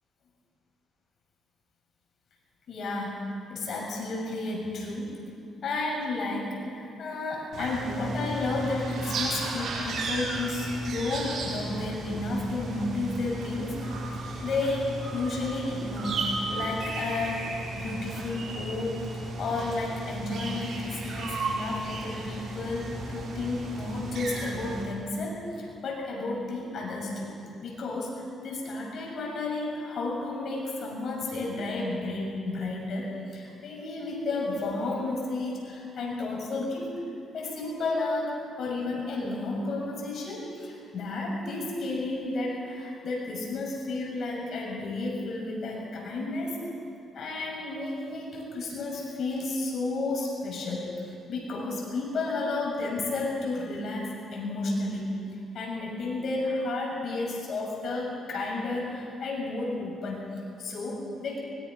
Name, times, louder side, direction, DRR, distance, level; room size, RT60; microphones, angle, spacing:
voice 1, 2.7-5.2 5.6-13.9 14.2-17.4 17.7-19.1 19.4-27.3 27.6-37.0 37.3-46.6 47.1-50.9 51.3-55.2 55.5-61.4, left 2 dB, 60° left, -2 dB, 6.7 m, -32 dB
sound 1, 7.5-24.8, right 2 dB, 65° right, 5.9 m, -34 dB
24.0 x 22.5 x 5.6 m, 2.5 s
cardioid pair, 90°, 0 cm